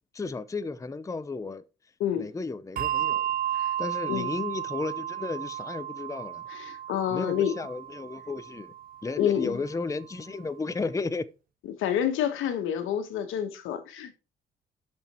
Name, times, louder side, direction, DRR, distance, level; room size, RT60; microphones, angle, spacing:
voice 1, 0.1-1.6 2.2-6.4 7.1-8.7 9.0-11.3, left 3 dB, 15° left, 0.6 m, -34 dB
Bell, 2.8-9.6, right 11 dB, 45° right, 0.4 m, -33 dB
voice 2, 6.5-7.5 9.2-9.6 11.7-14.2, left 9 dB, 90° left, 1.5 m, -28 dB
7.2 x 6.2 x 4.4 m
cardioid pair, 90°, 20 cm